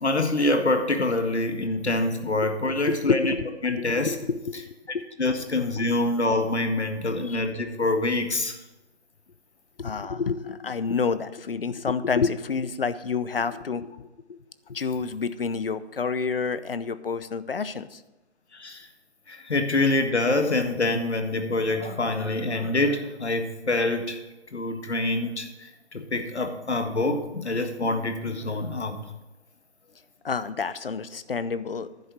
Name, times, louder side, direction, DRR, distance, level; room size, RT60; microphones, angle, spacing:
voice 1, 0.0-3.3 3.6-4.1 5.2-8.6 18.5-18.9 19.3-24.2 24.5-25.5 25.9-29.0, left 2 dB, 75° left, 7 dB, 1.7 m, -25 dB
voice 2, 2.9-4.7 4.9-5.0 7.2-7.4 9.8-14.4 14.7-18.0 30.2-31.9, left 5 dB, 55° left, 14 dB, 0.7 m, -29 dB
10.5 x 7.7 x 6.4 m, 1.0 s
figure-of-eight pair, 155°, 34 cm